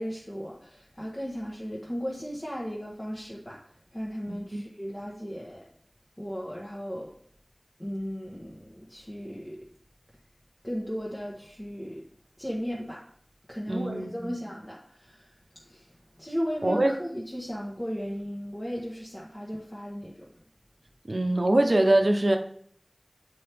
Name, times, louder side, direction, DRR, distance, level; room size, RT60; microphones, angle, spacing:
voice 1, 0.0-3.6 3.9-5.6 6.2-7.1 7.8-9.6 10.6-12.0 12.4-13.0 13.5-15.3 15.7-15.8 16.2-20.3, equal, 20° left, -4 dB, 1.1 m, -36 dB
voice 2, 4.3-4.6 13.7-14.4 16.6-16.9 21.1-22.4, right 1 dB, 65° right, 5 dB, 0.7 m, -23 dB
7.7 x 4.4 x 3.4 m, 0.62 s
wide cardioid pair, 45°, 0 cm